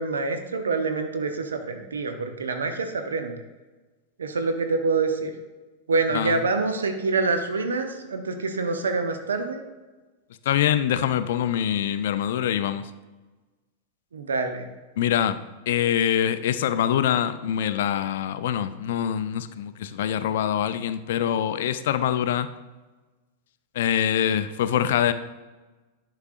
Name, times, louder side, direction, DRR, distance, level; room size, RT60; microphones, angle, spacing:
voice 1, 0.0-3.4 4.2-5.3 5.9-9.6 14.1-14.7, right 4 dB, 70° right, 6 dB, 0.6 m, -26 dB
voice 2, 10.5-12.9 15.0-22.5 23.7-25.1, left 10 dB, 55° left, 12 dB, 0.4 m, -24 dB
11.5 x 4.9 x 2.5 m, 1.2 s
figure-of-eight pair, 90°, 0 cm